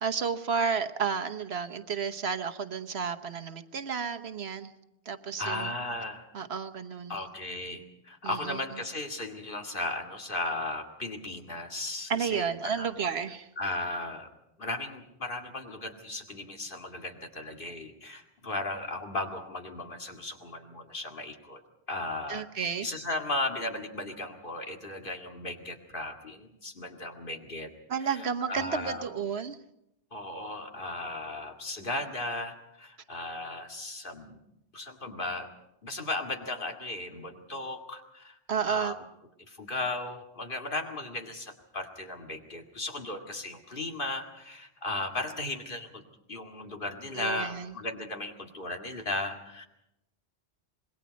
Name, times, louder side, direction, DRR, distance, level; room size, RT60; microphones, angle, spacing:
voice 1, 0.0-4.7 5.1-5.7 6.3-7.2 8.2-8.6 12.1-13.5 22.3-22.9 27.9-29.6 38.5-39.0 47.2-47.7, right 6 dB, 75° right, 8 dB, 1.3 m, -31 dB
voice 2, 5.4-6.3 7.1-12.9 13.6-14.3 14.6-21.6 21.9-27.7 28.1-29.0 30.1-34.4 34.7-35.5 35.8-38.4 38.6-38.9 39.5-46.0 46.3-49.7, left 2 dB, 55° left, 3 dB, 2.3 m, -36 dB
26.5 x 21.0 x 5.2 m, 0.84 s
omnidirectional pair, 1.1 m